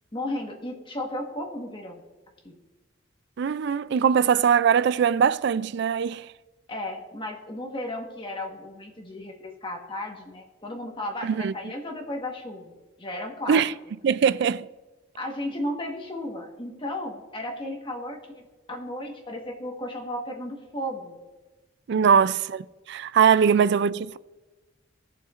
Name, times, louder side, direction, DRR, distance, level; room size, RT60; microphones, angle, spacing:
voice 1, 0.1-2.0 2.4-2.5 6.7-13.6 15.1-21.2 21.9-22.3, left 1 dB, 25° left, 1.4 m, -34 dB
voice 2, 3.4-6.3 11.2-11.5 13.5-13.7 14.0-14.7 21.9-22.6 22.9-24.2, right 7 dB, 65° right, 0.3 m, -21 dB
18.5 x 6.9 x 2.5 m
head